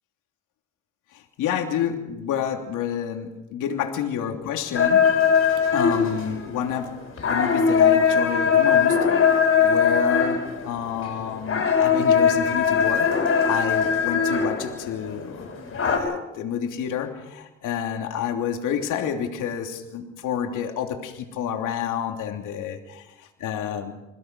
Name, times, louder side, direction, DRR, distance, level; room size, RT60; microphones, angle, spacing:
voice 1, 1.1-5.1 5.7-6.9 7.2-13.1 13.4-23.9, left 8 dB, 90° left, 3 dB, 3.1 m, -29 dB
sound 1, 4.8-16.0, left 6 dB, 45° left, 6.0 m, -21 dB
26.5 x 16.5 x 6.2 m, 0.99 s
cardioid pair, 90°, 30 cm